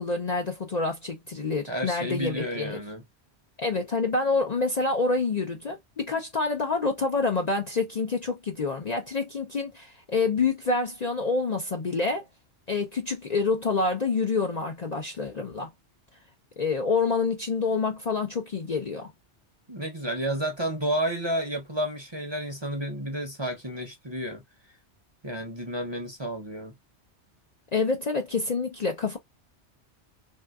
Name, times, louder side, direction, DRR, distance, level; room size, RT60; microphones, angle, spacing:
voice 1, 0.0-2.8 3.6-12.3 12.7-15.7 16.6-19.1 27.7-29.2, left 4 dB, 45° left, 0.6 m, -27 dB
voice 2, 1.7-3.0 19.7-24.4 25.2-26.7, right 1 dB, 25° right, 0.7 m, -31 dB
3.4 x 2.7 x 2.2 m
omnidirectional pair, 1.2 m